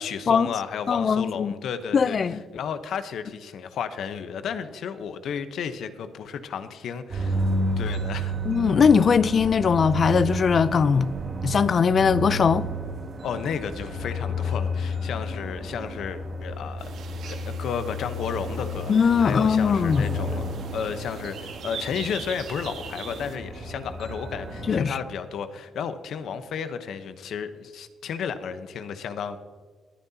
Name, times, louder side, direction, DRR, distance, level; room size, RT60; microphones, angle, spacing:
voice 1, 0.0-2.2 2.5-7.4 7.8-8.4 13.2-16.9 17.5-29.4, left 7 dB, 70° left, 1.0 m, -33 dB
voice 2, 0.9-1.5 1.9-2.4 8.5-11.1 11.4-12.7 18.9-20.1 24.7-25.0, left 6 dB, 45° left, 0.5 m, -20 dB
sound 1, 7.1-24.8, equal, 45° right, 4.3 m, -32 dB
sound 2, 16.8-23.4, right 6 dB, 70° right, 1.5 m, -41 dB
21.5 x 9.7 x 2.8 m
cardioid pair, 90°, 0 cm